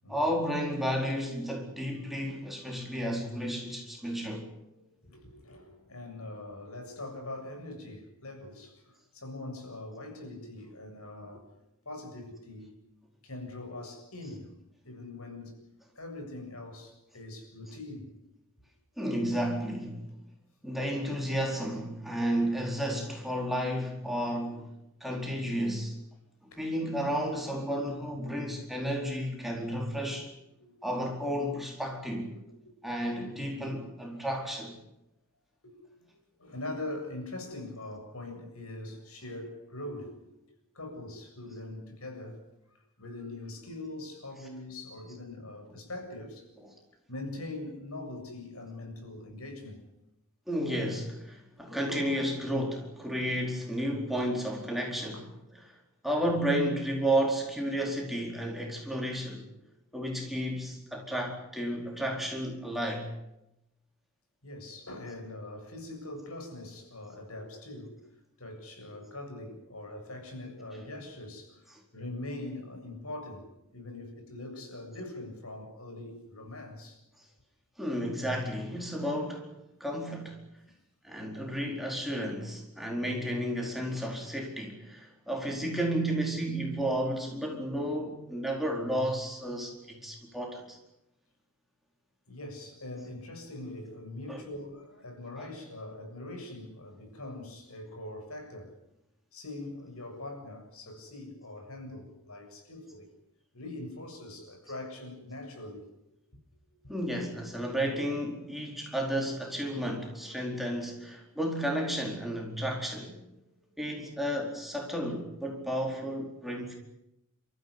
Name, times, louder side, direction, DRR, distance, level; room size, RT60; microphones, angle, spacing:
voice 1, 0.1-4.4 19.0-20.1 20.6-24.7 25.0-26.0 26.6-30.3 30.8-32.3 32.8-34.7 50.5-55.2 55.6-55.8 56.0-59.5 59.9-63.1 77.8-79.5 79.8-80.4 81.0-90.8 94.3-94.4 95.4-95.5 106.9-113.2 113.8-116.8, equal, ahead, 4.5 m, -32 dB
voice 2, 4.7-11.6 11.9-12.7 13.2-14.6 14.8-15.7 16.0-18.1 19.0-19.2 26.5-26.6 30.6-30.7 32.3-32.7 35.6-40.4 40.7-42.4 43.0-46.7 47.1-49.8 51.4-51.5 55.1-55.3 56.3-56.4 64.4-68.0 68.4-73.5 73.7-77.0 92.3-98.7 99.3-103.1 103.5-105.9 110.3-110.4, left 2 dB, 80° left, 7.2 m, -42 dB
29.5 x 15.0 x 9.9 m
head